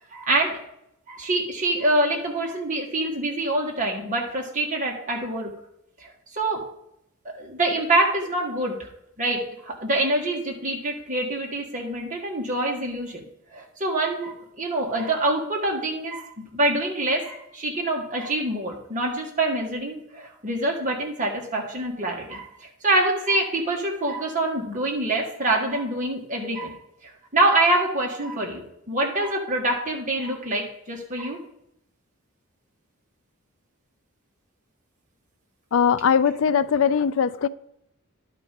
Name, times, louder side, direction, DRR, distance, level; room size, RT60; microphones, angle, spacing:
voice 1, 0.1-0.6 1.1-5.5 6.0-6.7 7.3-8.9 9.2-13.2 13.5-26.8 27.0-31.4, right 2 dB, 35° right, -1 dB, 1.6 m, -25 dB
voice 2, 35.7-37.5, left 7 dB, 65° left, 15 dB, 0.4 m, -20 dB
11.0 x 4.3 x 5.1 m, 0.78 s
head